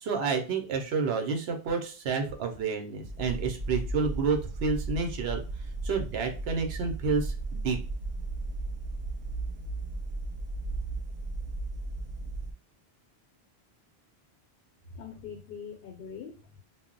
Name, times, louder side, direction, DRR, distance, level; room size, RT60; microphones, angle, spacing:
voice 1, 0.0-5.4 5.8-7.8, right 5 dB, 80° right, 4 dB, 0.9 m, -29 dB
sound 1, 3.0-12.5, right 2 dB, 50° right, 0.4 m, -35 dB
voice 2, 14.9-16.6, left 7 dB, 70° left, 1 dB, 0.8 m, -43 dB
2.2 x 2.0 x 3.7 m, 0.34 s
omnidirectional pair, 1.0 m